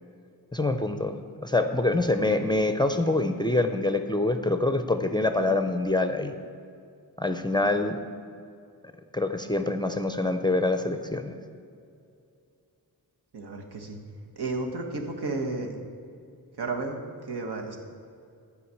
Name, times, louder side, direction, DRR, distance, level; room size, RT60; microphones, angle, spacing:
voice 1, 0.5-6.3 7.2-8.0 9.1-11.3, left 2 dB, 10° left, 7 dB, 0.5 m, -25 dB
voice 2, 13.3-14.0 14.4-15.7 16.6-17.0 17.3-17.8, right 3 dB, 80° right, 2 dB, 1.4 m, -32 dB
11.5 x 5.1 x 8.3 m, 2.4 s
wide cardioid pair, 125°, 39 cm